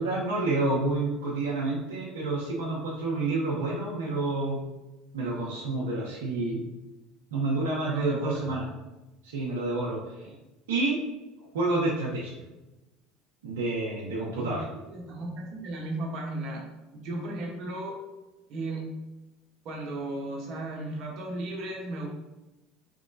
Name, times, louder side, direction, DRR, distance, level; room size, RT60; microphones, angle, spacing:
voice 1, 0.0-4.6 5.1-6.6 7.3-8.7 9.2-10.3 10.7-11.0 11.5-12.4 13.4-14.6, right 2 dB, 85° right, -4 dB, 0.7 m, -29 dB
voice 2, 7.8-8.4 10.3-10.4 14.4-16.6 16.9-18.0 18.5-18.9 19.6-22.1, right 2 dB, 60° right, 0 dB, 0.9 m, -35 dB
3.5 x 3.0 x 2.6 m, 1.0 s
hypercardioid pair, 75°, 0 cm